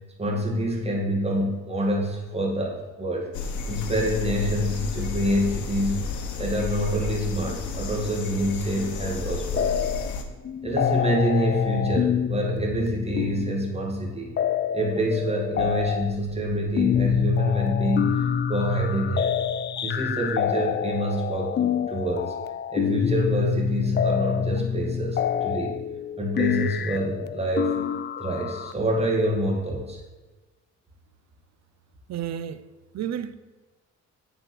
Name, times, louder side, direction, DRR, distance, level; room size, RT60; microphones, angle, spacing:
voice 1, 0.2-3.3 3.7-6.0 6.4-9.9 10.6-14.4 14.7-19.3 19.8-22.3 22.7-25.8 26.2-27.8 28.2-30.0, right 1 dB, 20° right, -1 dB, 2.3 m, -27 dB
sound 1, 3.3-10.2, left 4 dB, 75° left, 1.1 m, -32 dB
sound 2, 9.6-10.2 10.4-28.7, left 8 dB, 35° left, 0.4 m, -26 dB
voice 2, 32.1-32.6 32.9-33.3, right 9 dB, 60° right, 13 dB, 0.6 m, -31 dB
9.0 x 4.4 x 6.2 m, 1.3 s
cardioid pair, 90°, 30 cm